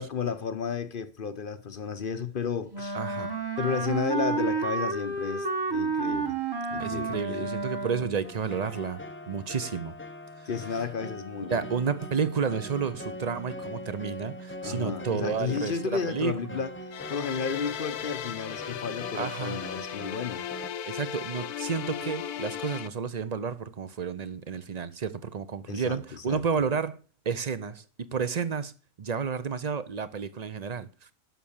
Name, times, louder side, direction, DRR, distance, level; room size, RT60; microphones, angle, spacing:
voice 1, 0.0-3.0 3.6-6.4 6.7-7.5 10.5-11.6 14.6-20.4 25.7-26.0 26.3-26.4, left 6 dB, 45° left, 0.7 m, -32 dB
Wind instrument woodwind instrument, 2.7-8.3, right 4 dB, 20° right, 1.0 m, -30 dB
voice 2, 2.9-3.4 6.8-9.0 9.3-9.9 10.4-10.5 11.5-16.6 19.1-19.6 20.9-27.0 27.2-28.7 29.0-30.9, right 6 dB, 45° right, 0.6 m, -31 dB
sound 1, 8.2-20.7, left 1 dB, 20° left, 0.3 m, -42 dB
sound 2, 16.9-22.9, left 9 dB, 80° left, 1.3 m, -36 dB
11.5 x 6.4 x 7.2 m
omnidirectional pair, 1.6 m